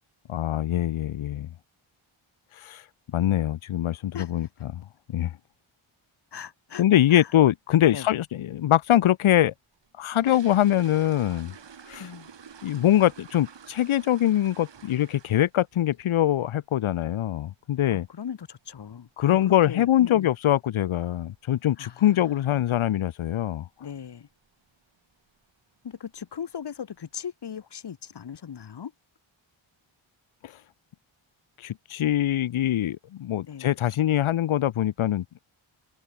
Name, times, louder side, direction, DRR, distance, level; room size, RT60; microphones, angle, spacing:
voice 1, 0.3-1.5 2.6-2.8 3.1-4.8 5.1-5.3 6.8-9.5 10.0-11.5 11.9-12.1 12.6-18.1 19.2-23.7 30.4-30.5 31.6-35.4, left 12 dB, 75° left, 0.7 m, -23 dB
voice 2, 6.3-6.8 7.1-7.3 7.9-8.1 12.0-12.3 17.9-20.3 21.8-22.0 22.4-22.6 23.8-24.3 25.8-28.9 33.5-33.7, left 8 dB, 55° left, 1.0 m, -38 dB
sound 1, 9.7-15.7 15.9-16.2 16.6-16.7 17.0-17.2 17.6-17.8 18.0-18.1 18.7-18.8 19.1-19.2 19.7-20.1 20.3-20.4 20.8-21.0 21.4-21.5 21.9-22.0 22.6-22.9 23.2-23.5 23.9-24.0 24.4-24.5 25.3-25.4 25.8-26.3 26.8-26.9, right 7 dB, 60° right, 1.7 m, -48 dB
wide cardioid pair, 80°, 49 cm